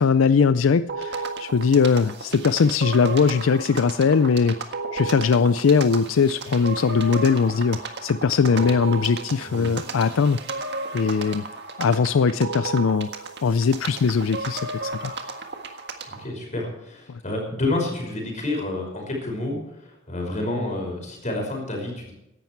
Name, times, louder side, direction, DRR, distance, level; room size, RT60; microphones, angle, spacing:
voice 1, 0.0-4.6 4.9-10.4 10.9-11.4 11.8-13.1 13.4-15.2, left 5 dB, 80° left, 13 dB, 0.4 m, -20 dB
sound 1, 0.9-16.2, right 3 dB, 55° right, 1.7 m, -33 dB
voice 2, 16.1-22.1, left 2 dB, 40° left, 1 dB, 5.5 m, -29 dB
16.5 x 11.5 x 4.6 m, 0.88 s
head